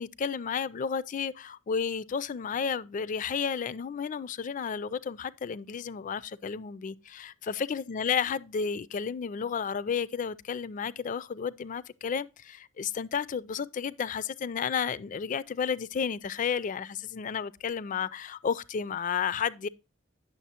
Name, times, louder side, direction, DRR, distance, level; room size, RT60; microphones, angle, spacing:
voice 1, 0.0-19.7, left 6 dB, 40° left, 0.3 m, -32 dB
9.2 x 6.7 x 2.8 m
head